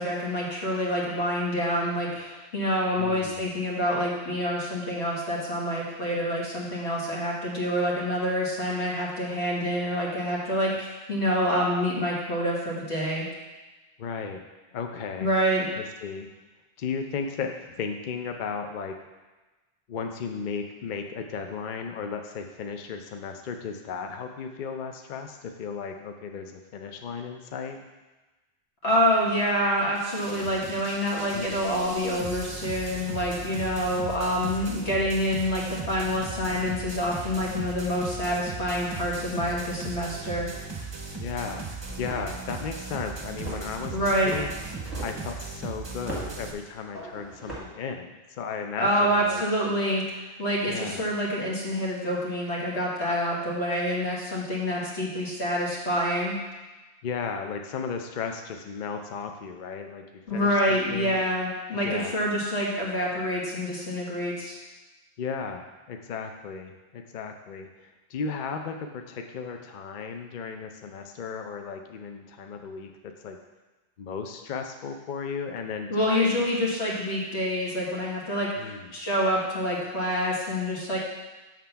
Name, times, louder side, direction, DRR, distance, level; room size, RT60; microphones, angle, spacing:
voice 1, 0.0-13.3 15.2-15.7 28.8-40.5 43.9-44.4 48.8-56.4 60.3-64.6 75.9-81.0, equal, 85° left, -4 dB, 2.0 m, -27 dB
voice 2, 3.0-3.5 14.0-14.4 14.7-15.3 15.8-16.3 16.8-18.9 19.9-27.8 31.3-31.6 41.2-41.7 42.0-44.5 45.0-49.4 50.7-51.1 57.0-60.0 60.3-61.2 61.8-62.2 65.2-72.9 73.2-73.4 74.0-76.5 78.6-78.9, left 5 dB, 55° left, 4 dB, 0.6 m, -35 dB
sound 1, 29.9-46.5, right 4 dB, 30° right, 0.6 m, -38 dB
sound 2, 40.9-41.1 41.5-42.5 43.4-43.7 44.3-45.3 46.1-46.4 46.9-47.6, right 1 dB, ahead, 1.6 m, -39 dB
7.5 x 3.7 x 5.6 m, 1.2 s
omnidirectional pair, 1.1 m